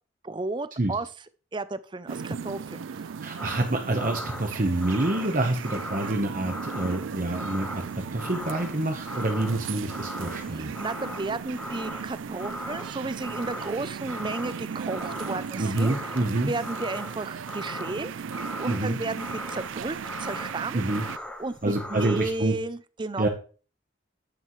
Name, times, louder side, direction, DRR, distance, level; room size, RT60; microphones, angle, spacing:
voice 1, 0.2-1.1 1.5-3.2 10.5-16.0 16.4-20.8 21.4-23.3, right 3 dB, 25° right, 15 dB, 0.4 m, -33 dB
sound 1, 2.1-21.2, right 6 dB, 90° right, 0.4 m, -37 dB
voice 2, 3.2-10.7 15.6-16.5 18.7-19.0 20.7-21.0 21.6-22.6 23.2-23.3, right 2 dB, 45° right, 3 dB, 1.0 m, -27 dB
sound 2, 3.4-22.4, left 1 dB, 5° left, 0.9 m, -39 dB
10.0 x 9.1 x 3.1 m, 0.39 s
head